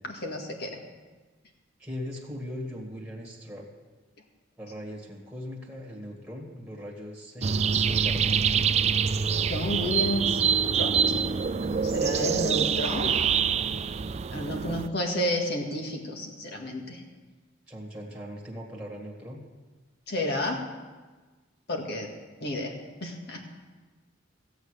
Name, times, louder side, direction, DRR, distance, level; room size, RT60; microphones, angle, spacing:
voice 1, 0.0-0.8 9.5-10.4 10.7-11.0 11.6-13.1 14.3-17.0 20.1-20.6 21.7-22.1 22.4-22.7 23.0-23.4, left 1 dB, 60° left, 2 dB, 2.0 m, -31 dB
voice 2, 1.8-3.7 4.6-8.5 17.7-19.4, equal, 5° right, -2 dB, 2.0 m, -39 dB
sound 1, 7.4-14.9, right 6 dB, 35° right, 0.4 m, -25 dB
15.5 x 8.1 x 6.6 m, 1.3 s
head